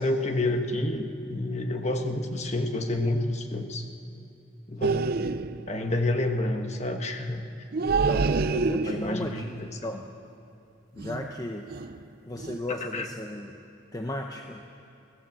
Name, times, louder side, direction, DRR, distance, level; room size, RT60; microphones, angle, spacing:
voice 1, 0.0-3.9 4.7-5.1 5.7-7.4 8.9-9.8 12.7-13.1, left 1 dB, 35° left, 5 dB, 1.4 m, -29 dB
sound 1, 4.8-5.7 7.7-9.3 11.0-11.3 11.7-12.0 12.4-12.6, right 4 dB, 50° right, 0.5 m, -27 dB
voice 2, 7.9-10.1 10.9-11.7 12.3-13.6 13.9-14.6, left 1 dB, 20° left, 2 dB, 0.8 m, -35 dB
24.5 x 16.5 x 7.6 m, 2.6 s
head